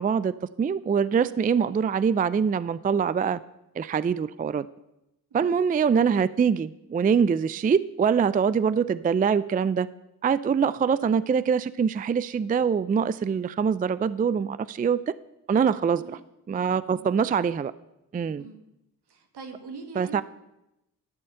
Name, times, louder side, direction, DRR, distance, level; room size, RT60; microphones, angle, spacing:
voice 1, 0.0-3.4 3.8-4.7 5.3-9.9 10.2-15.1 15.5-16.0 16.5-17.7 18.1-18.5 20.0-20.2, right 6 dB, 20° right, 17 dB, 0.4 m, -24 dB
voice 2, 15.7-16.2 16.9-17.2 18.3-18.6 19.1-20.2, right 4 dB, 70° right, 6 dB, 1.7 m, -43 dB
12.5 x 4.2 x 8.0 m, 0.89 s
supercardioid pair, 45°, 41 cm